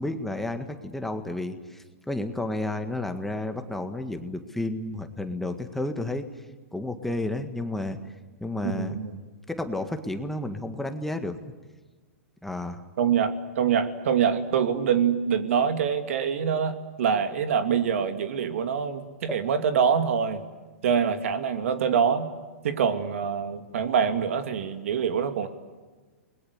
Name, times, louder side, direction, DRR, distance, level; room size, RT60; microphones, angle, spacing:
voice 1, 0.0-6.3 6.7-8.0 8.4-9.0 9.5-11.4 12.4-12.8 19.3-19.4, left 1 dB, 5° left, 6 dB, 1.8 m, -31 dB
voice 2, 8.6-9.2 13.0-20.4 20.8-22.3 22.6-25.5, right 7 dB, 65° right, 8 dB, 2.7 m, -25 dB
29.5 x 21.0 x 8.2 m, 1.3 s
hypercardioid pair, 130°, 8 cm